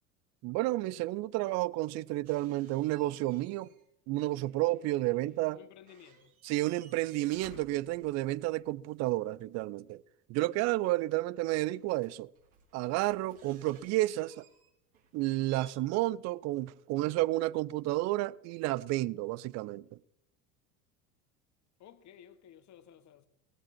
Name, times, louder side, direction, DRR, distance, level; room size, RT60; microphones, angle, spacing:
voice 1, 0.4-3.7 4.1-5.6 6.5-10.0 10.3-12.3 12.7-14.4 15.1-19.8, right 18 dB, 35° right, 0.5 m, -31 dB
sound 1, 2.2-3.9 4.1-5.6 5.8-8.6 10.9-11.0 11.7-15.7, right 6 dB, 70° right, 4.1 m, -60 dB
voice 2, 5.5-6.3 21.8-23.3, left 9 dB, 40° left, 1.4 m, -55 dB
19.0 x 16.0 x 4.5 m
figure-of-eight pair, 70°, 45 cm